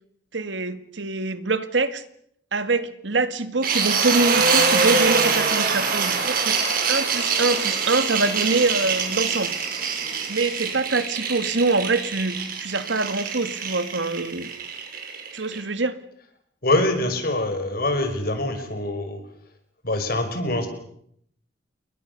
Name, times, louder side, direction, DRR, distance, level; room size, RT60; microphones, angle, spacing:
voice 1, 0.3-2.0 2.5-9.5 10.3-14.5 15.3-16.0, right 3 dB, 80° right, 11 dB, 2.1 m, -25 dB
sound 1, 3.6-15.6, right 5 dB, 50° right, 5.7 m, -24 dB
voice 2, 16.6-19.2 19.8-20.7, left 2 dB, 55° left, 7 dB, 5.6 m, -24 dB
29.5 x 22.5 x 6.8 m, 0.70 s
head